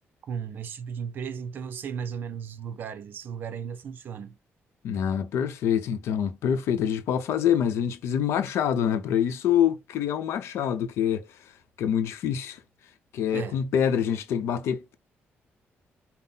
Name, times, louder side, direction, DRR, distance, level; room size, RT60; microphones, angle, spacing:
voice 1, 0.3-4.4 13.3-13.6, right 7 dB, 50° right, 0.6 m, -35 dB
voice 2, 4.8-11.3 11.8-12.6 13.1-14.9, left 9 dB, 85° left, 0.7 m, -26 dB
5.6 x 2.1 x 3.9 m
cardioid pair, 175°, 4 cm